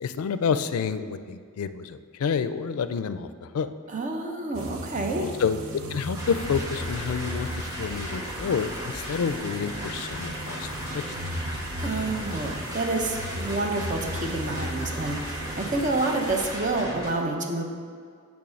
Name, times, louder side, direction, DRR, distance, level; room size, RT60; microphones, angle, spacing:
voice 1, 0.0-3.7 5.2-10.7, left 6 dB, 90° left, 12 dB, 0.4 m, -29 dB
voice 2, 3.9-5.3 11.8-17.6, right 2 dB, 35° right, 3 dB, 0.7 m, -28 dB
sound 1, 4.5-16.6, right 1 dB, 75° right, 0.7 m, -37 dB
sound 2, 6.2-17.1, equal, 15° right, 1.1 m, -36 dB
8.5 x 3.6 x 6.3 m, 2.2 s
head